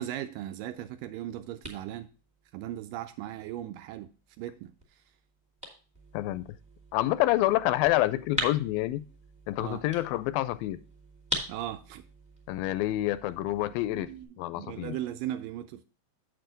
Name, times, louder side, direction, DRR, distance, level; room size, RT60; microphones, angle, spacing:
voice 1, 0.0-2.1 2.5-4.1 4.4-4.7 9.6-9.8 11.5-12.0 13.9-14.3 14.6-15.8, right 12 dB, 80° right, 2.1 m, -37 dB
sound 1, 0.8-14.2, equal, 5° right, 0.9 m, -43 dB
voice 2, 6.9-9.0 9.5-10.8 12.5-14.1 14.4-15.0, left 16 dB, 85° left, 2.2 m, -27 dB
8.3 x 6.7 x 3.8 m
omnidirectional pair, 4.2 m